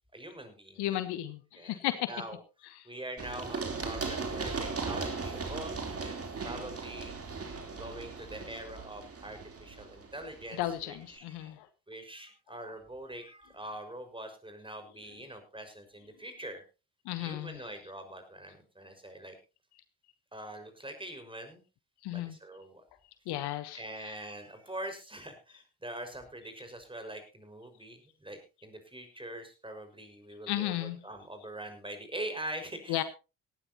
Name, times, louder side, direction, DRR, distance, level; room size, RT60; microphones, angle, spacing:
voice 1, 0.1-1.0 1.5-1.8 2.1-2.4 2.9-7.1 7.7-11.5 11.9-16.6 17.2-19.4 20.3-21.6 22.1-22.8 23.7-33.0, right 1 dB, 10° right, 7 dB, 5.5 m, -43 dB
voice 2, 0.8-2.1 2.7-2.9 10.5-11.7 12.5-12.6 17.0-17.6 22.0-22.4 23.3-24.1 30.5-31.0 32.9-33.0, left 14 dB, 60° left, 12 dB, 1.3 m, -34 dB
Run, 3.2-10.8, right 4 dB, 30° right, 3.5 m, -38 dB
18.0 x 13.5 x 2.9 m, 0.31 s
hypercardioid pair, 50°, 44 cm